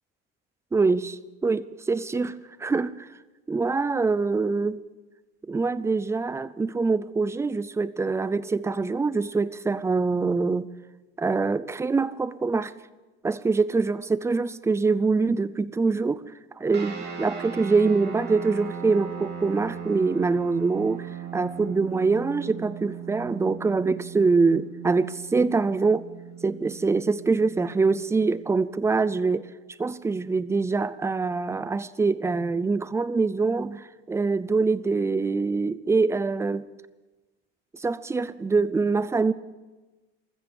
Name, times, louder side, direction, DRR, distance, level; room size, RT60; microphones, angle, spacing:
voice 1, 0.7-3.1 3.5-4.8 5.5-10.7 11.2-12.7 13.2-16.2 16.6-26.1 26.4-29.5 29.8-36.6 37.7-39.3, right 4 dB, 10° right, 0.4 m, -24 dB
sound 1, 16.7-28.5, right 8 dB, 35° right, 3.2 m, -38 dB
14.5 x 14.0 x 7.0 m
supercardioid pair, 130°, 31 cm